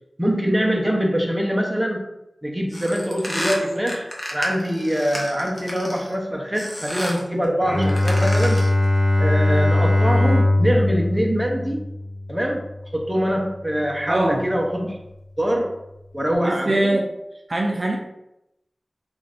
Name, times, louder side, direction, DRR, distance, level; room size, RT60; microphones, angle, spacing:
voice 1, 0.2-2.0 2.4-8.6 9.2-11.9 12.3-12.6 12.9-15.0 15.4-15.7 16.1-17.0, equal, 10° right, 0 dB, 0.6 m, -23 dB
sound 1, 2.7-6.1 6.6-7.3 7.8-8.8, equal, 30° left, 0.7 m, -32 dB
Bowed string instrument, 7.6-13.3, left 1 dB, 5° left, 1.2 m, -20 dB
voice 2, 14.1-14.5 16.4-17.1 17.5-18.0, right 1 dB, 50° right, 0 dB, 0.4 m, -22 dB
2.6 x 2.5 x 3.3 m, 0.87 s
wide cardioid pair, 60°, 0 cm